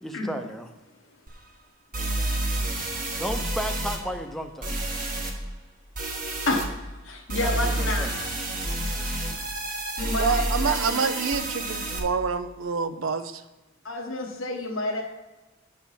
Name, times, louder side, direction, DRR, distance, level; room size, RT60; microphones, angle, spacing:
voice 1, 0.0-0.6 3.2-4.8 7.4-8.1, equal, ahead, 5 dB, 0.7 m, -33 dB
sound 1, 1.3-1.4 1.9-4.0 4.6-5.3 5.9-6.7 7.3-12.0, right 1 dB, 45° right, 1.4 m, -29 dB
voice 2, 7.0-8.3 9.3-9.4 10.0-11.0 13.8-15.0, left 2 dB, 80° left, -1 dB, 1.1 m, -29 dB
voice 3, 10.2-13.3, right 5 dB, 75° right, 11 dB, 0.6 m, -27 dB
7.1 x 6.5 x 5.6 m, 1.1 s
head